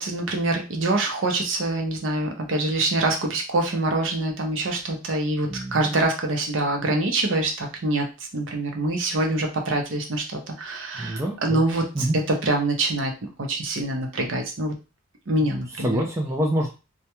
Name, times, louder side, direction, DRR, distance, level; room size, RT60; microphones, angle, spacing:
voice 1, 0.0-8.1 8.3-12.0 12.4-13.1 13.4-14.7 15.3-16.0, right 2 dB, 55° right, 3 dB, 0.6 m, -25 dB
voice 2, 11.0-11.6 11.9-12.2 15.4-16.7, right 1 dB, 15° right, -1 dB, 0.3 m, -26 dB
2.2 x 2.1 x 2.9 m, 0.30 s
head